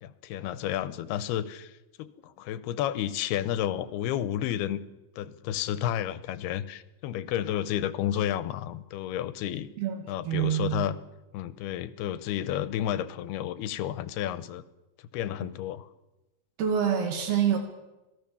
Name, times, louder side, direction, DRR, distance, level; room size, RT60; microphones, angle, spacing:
voice 1, 0.0-1.7 2.0-4.8 5.2-9.7 10.1-11.0 11.3-14.6 15.1-15.9, left 11 dB, 90° left, 14 dB, 2.9 m, -31 dB
voice 2, 9.8-10.8 16.6-17.6, right 9 dB, 80° right, 5 dB, 4.3 m, -26 dB
26.5 x 18.5 x 7.1 m, 1.0 s
omnidirectional pair, 4.5 m